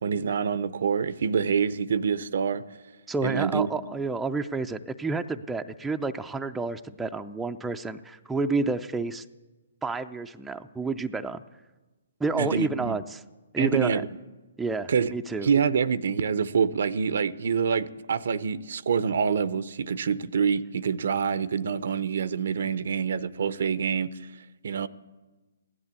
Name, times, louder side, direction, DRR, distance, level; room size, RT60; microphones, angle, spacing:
voice 1, 0.0-2.6 3.2-3.7 12.4-13.0 13.6-14.1 14.9-15.1 15.4-24.2 24.6-24.9, right 6 dB, 60° right, 0.6 m, -26 dB
voice 2, 3.1-9.2 9.8-11.4 12.2-13.2 13.5-14.0 14.6-15.5, right 3 dB, 5° right, 0.5 m, -30 dB
16.0 x 11.0 x 8.3 m
figure-of-eight pair, 130°, 0 cm